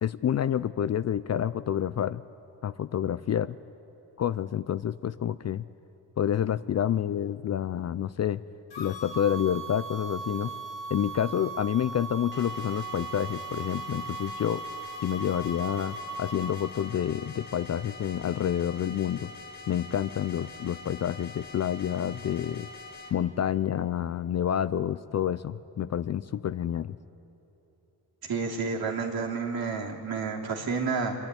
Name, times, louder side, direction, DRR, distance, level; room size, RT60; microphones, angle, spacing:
voice 1, 0.0-2.2 2.6-3.6 4.2-5.7 6.2-8.4 8.8-10.5 10.9-14.6 15.0-19.3 19.7-22.7 23.1-27.0, left 10 dB, 40° left, 15 dB, 0.4 m, -28 dB
sound 1, 8.7-16.9, right 3 dB, 80° left, 2.3 m, -38 dB
sound 2, 12.3-23.1, left 3 dB, 25° left, 2.3 m, -45 dB
voice 2, 28.3-31.2, right 4 dB, 60° right, -1 dB, 2.9 m, -30 dB
25.5 x 10.5 x 9.8 m, 3.0 s
cardioid pair, 100°, 42 cm